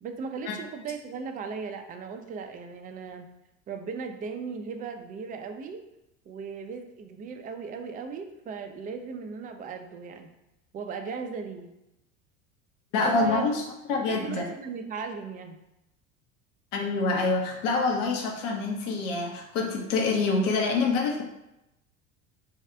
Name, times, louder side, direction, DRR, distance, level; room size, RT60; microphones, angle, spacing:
voice 1, 0.0-3.3 3.7-5.8 6.3-10.3 10.7-11.7 13.0-13.4 14.1-15.6, right 5 dB, 20° right, 6 dB, 0.4 m, -37 dB
voice 2, 12.9-13.6 13.9-14.4 16.7-21.2, left 3 dB, 65° left, 1 dB, 0.9 m, -26 dB
3.4 x 2.4 x 4.4 m, 0.89 s
hypercardioid pair, 70°, 41 cm